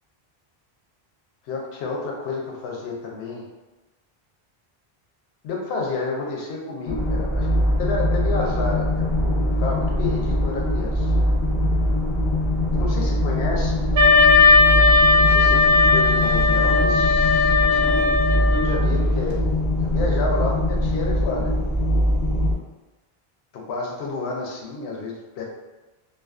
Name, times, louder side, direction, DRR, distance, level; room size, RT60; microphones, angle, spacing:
voice 1, 1.5-3.4 5.4-7.5 7.8-11.1 12.7-13.8 15.1-21.5 23.5-25.4, left 3 dB, 85° left, -1 dB, 0.9 m, -30 dB
sound 1, 6.9-22.5, equal, 50° left, 0.7 m, -22 dB
Wind instrument woodwind instrument, 13.9-18.8, left 4 dB, 65° right, 0.7 m, -17 dB
2.4 x 2.3 x 2.3 m, 1.1 s
omnidirectional pair, 1.0 m